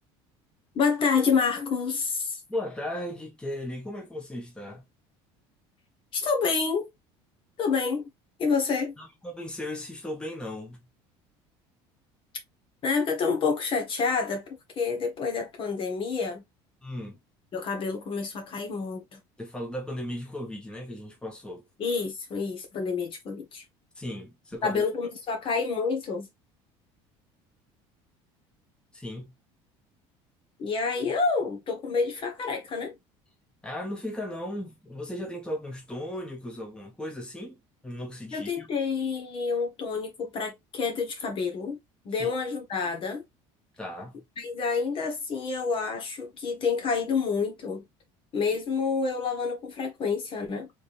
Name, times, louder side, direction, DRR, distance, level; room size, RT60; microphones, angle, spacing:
voice 1, 0.7-2.4 6.1-6.9 7.6-8.1 8.4-8.9 12.8-16.4 17.5-19.2 21.8-23.6 24.6-26.3 30.6-32.9 38.3-41.8 42.0-43.2 44.4-47.9 48.3-50.7, left 5 dB, 45° left, 1.4 m, -28 dB
voice 2, 2.5-4.8 9.0-10.8 16.8-17.2 19.4-21.6 24.0-24.8 28.9-29.3 33.6-37.6 37.8-38.7 42.2-42.3 43.8-44.2, left 1 dB, 5° left, 1.2 m, -36 dB
3.7 x 3.4 x 2.6 m
cardioid pair, 120°, 13 cm